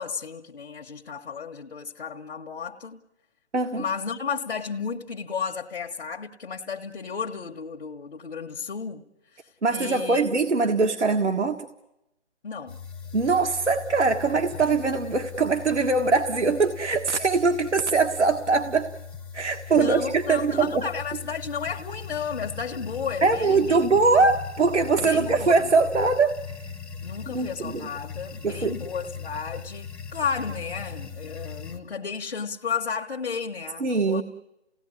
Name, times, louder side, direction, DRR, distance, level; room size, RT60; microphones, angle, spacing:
voice 1, 0.0-3.0 3.8-9.1 9.7-10.4 12.4-12.8 19.7-23.8 25.0-25.7 27.0-34.2, left 6 dB, 50° left, 1.4 m, -33 dB
voice 2, 3.5-3.9 9.6-11.7 13.1-18.9 19.3-20.8 23.2-26.7 27.3-27.9 28.4-28.8 33.8-34.2, right 4 dB, 85° right, 1.7 m, -22 dB
sound 1, 12.7-31.8, left 6 dB, 5° left, 0.9 m, -39 dB
29.0 x 17.5 x 9.7 m
figure-of-eight pair, 150°, 34 cm